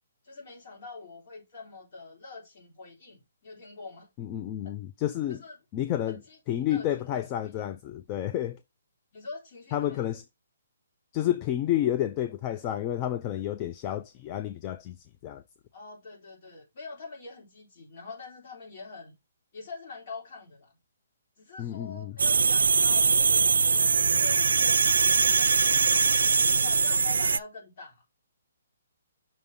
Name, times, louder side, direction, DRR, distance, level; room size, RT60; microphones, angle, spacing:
voice 1, 0.2-4.1 4.6-4.7 5.3-5.6 6.0-7.6 9.1-10.1 15.7-19.2 19.5-20.8 21.4-25.7 26.5-28.0, left 3 dB, 40° left, 3.3 m, -45 dB
voice 2, 4.2-5.4 5.7-6.2 6.5-8.6 9.7-10.2 11.1-15.0 15.2-15.4 21.6-22.1, left 12 dB, 20° left, 0.3 m, -30 dB
sound 1, 22.2-27.4, right 5 dB, 85° right, 0.4 m, -22 dB
6.1 x 3.6 x 5.3 m
hypercardioid pair, 170°, 0 cm